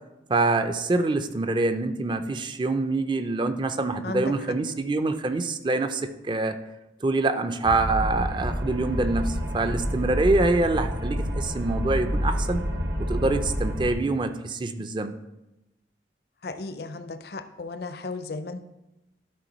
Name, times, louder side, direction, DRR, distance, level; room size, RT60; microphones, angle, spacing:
voice 1, 0.3-6.6 7.0-12.6 13.0-15.2, right 2 dB, 25° right, 9 dB, 0.4 m, -25 dB
sound 1, 7.6-13.9, equal, 75° right, 1.1 m, -28 dB
voice 2, 16.4-18.6, left 3 dB, 60° left, 11 dB, 0.5 m, -35 dB
12.0 x 4.2 x 3.9 m, 0.97 s
head